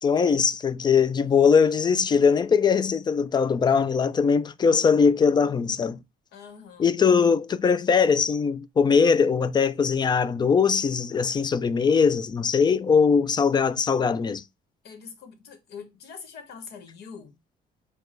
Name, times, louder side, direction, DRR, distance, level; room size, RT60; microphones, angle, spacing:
voice 1, 0.0-6.0 6.8-14.4, left 6 dB, 25° left, 0.3 m, -21 dB
voice 2, 6.3-6.9 14.8-17.4, left 6 dB, 75° left, 1.3 m, -44 dB
4.6 x 2.3 x 4.4 m
cardioid pair, 110°, 17 cm